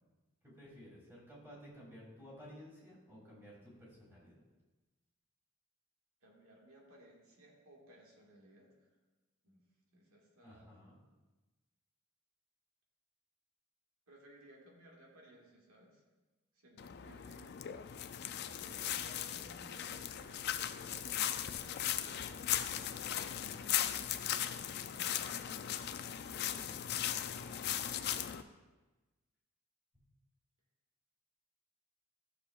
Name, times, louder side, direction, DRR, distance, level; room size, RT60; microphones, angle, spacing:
voice 1, 0.4-4.4 10.4-11.0 26.1-27.0 27.4-27.7, equal, 10° right, -6 dB, 2.6 m, -55 dB
voice 2, 6.2-8.9 9.4-9.7 9.9-10.7 14.1-16.0 16.5-17.6 18.6-25.3 27.1-27.5, right 1 dB, 80° right, -1 dB, 1.7 m, -60 dB
sound 1, 16.8-28.4, left 10 dB, 50° left, 0.3 m, -38 dB
13.0 x 6.6 x 2.4 m, 1.2 s
head